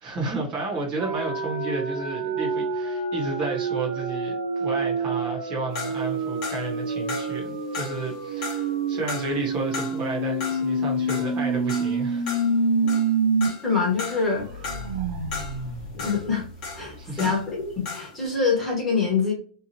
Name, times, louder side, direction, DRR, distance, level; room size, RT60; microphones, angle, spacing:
voice 1, 0.0-12.3 17.0-17.3, right 3 dB, 25° right, 0.9 m, -32 dB
sound 1, 1.0-13.5 13.8-13.9 14.3-17.0, right 3 dB, 50° right, 1.0 m, -27 dB
sound 2, 5.7-17.6 17.8-18.2, left 4 dB, 25° left, 1.0 m, -37 dB
voice 2, 13.6-14.5 15.9-16.4 16.7-19.3, left 4 dB, 5° left, 1.0 m, -25 dB
2.8 x 2.4 x 2.6 m
supercardioid pair, 180°, 4 cm